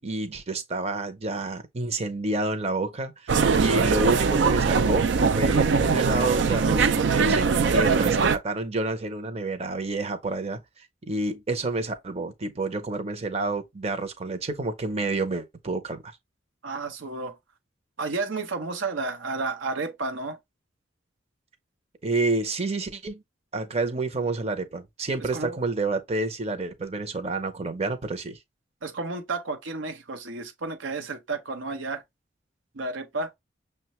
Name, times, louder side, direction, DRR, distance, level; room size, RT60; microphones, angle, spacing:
voice 1, 0.0-10.6 11.1-16.1 22.0-23.2 23.5-28.4, right 2 dB, 35° right, 0.6 m, -29 dB
sound 1, 3.3-8.4, right 5 dB, 70° right, 0.4 m, -21 dB
voice 2, 16.6-17.4 18.0-20.4 25.3-25.6 28.8-32.0 32.7-33.3, right 3 dB, 85° right, 0.8 m, -31 dB
6.3 x 2.2 x 2.9 m
head